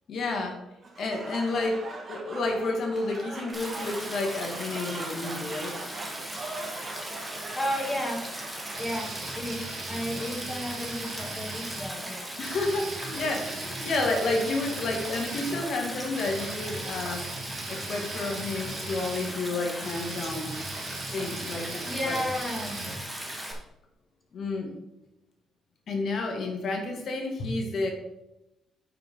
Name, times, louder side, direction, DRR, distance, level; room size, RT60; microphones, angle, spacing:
voice 1, 0.1-0.6 1.0-1.8 2.1-5.8 12.4-17.3 17.7-20.6 21.1-22.2 24.3-24.7 25.9-27.9, left 2 dB, 60° left, 2 dB, 2.1 m, -30 dB
Applause / Crowd, 0.8-9.7, right 3 dB, 40° right, 1.8 m, -41 dB
Stream, 3.5-23.5, right 1 dB, 5° right, 2.2 m, -38 dB
voice 2, 7.5-8.2 8.7-12.3 21.9-22.8, equal, 15° left, -1 dB, 2.8 m, -33 dB
sound 1, 8.7-11.9 12.4-23.5, right 3 dB, 70° right, 1.8 m, -40 dB
9.2 x 6.9 x 3.8 m, 0.92 s
cardioid pair, 90°, 0 cm